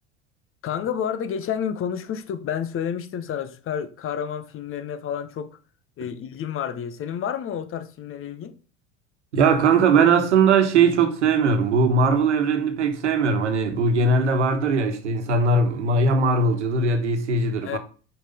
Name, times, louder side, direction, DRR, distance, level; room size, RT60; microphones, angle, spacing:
voice 1, 0.6-5.6 6.0-8.6 17.6-17.8, left 8 dB, 40° left, 1.0 m, -30 dB
voice 2, 9.3-17.8, right 4 dB, 85° right, 1.3 m, -20 dB
5.8 x 4.9 x 5.1 m
hypercardioid pair, 80°, 34 cm